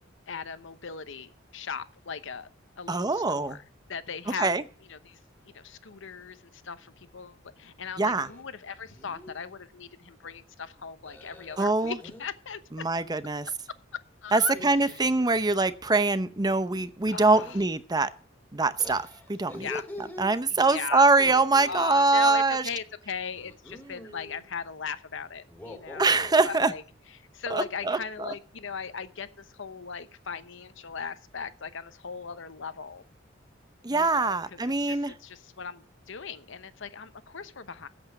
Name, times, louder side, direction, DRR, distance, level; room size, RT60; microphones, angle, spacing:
voice 1, 0.3-2.5 2.8-3.6 3.9-4.5 4.9-5.2 5.4-12.6 14.2-14.5 14.8-15.1 17.1-17.6 19.6-19.9 20.5-21.1 21.6-26.8 27.1-33.0 33.9-37.9, left 6 dB, 70° left, 0.9 m, -38 dB
voice 2, 2.9-3.6 4.4-4.6 8.0-8.3 11.6-11.9 12.8-13.5 14.3-18.1 18.5-19.7 20.2-22.6 26.0-26.7 27.5-28.3 33.8-35.1, right 3 dB, 20° right, 0.7 m, -24 dB
sound 1, 8.1-8.4 8.8-9.3 11.0-12.3 14.4-15.7 17.2-17.6 18.8-20.3 21.0-21.9 23.3-24.4 25.4-26.4, left 1 dB, 10° left, 2.1 m, -44 dB
8.8 x 8.0 x 8.8 m
head